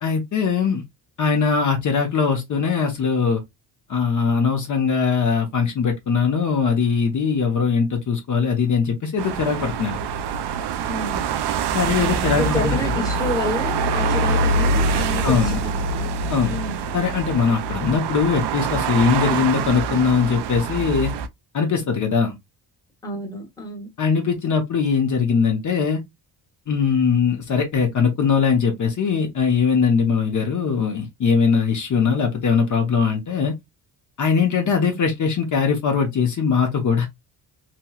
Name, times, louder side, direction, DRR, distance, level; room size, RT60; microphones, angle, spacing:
voice 1, 0.0-0.8 1.2-3.4 3.9-10.0 11.7-13.0 15.2-15.6 16.3-16.6 16.9-21.1 21.5-22.3 24.0-26.0 26.7-33.5 34.2-37.1, left 6 dB, 50° left, 0.9 m, -21 dB
sound 1, 9.2-21.3, right 4 dB, 85° right, 0.5 m, -24 dB
voice 2, 10.9-11.2 12.2-16.1 16.5-16.8 23.0-23.9, left 1 dB, 10° left, 1.1 m, -29 dB
3.0 x 3.0 x 2.3 m
wide cardioid pair, 155°, 40 cm